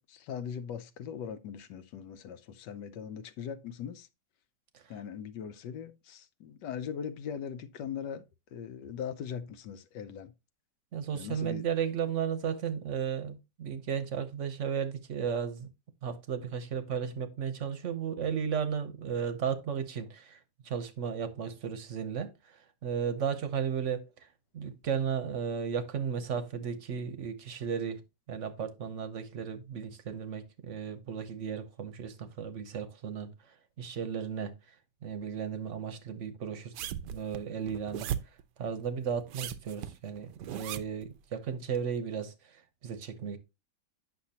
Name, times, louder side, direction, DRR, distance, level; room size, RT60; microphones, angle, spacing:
voice 1, 0.0-4.1 4.9-8.2 8.5-10.3 11.1-11.6, left 8 dB, 75° left, 1.3 m, -40 dB
voice 2, 10.9-15.7 16.0-24.3 24.5-28.0 28.3-34.6 35.0-38.1 38.6-43.4, right 7 dB, 50° right, 1.0 m, -35 dB
sound 1, 36.7-38.4 39.2-41.0 41.7-41.8, right 10 dB, 75° right, 1.2 m, -37 dB
9.1 x 6.1 x 2.8 m
omnidirectional pair, 1.9 m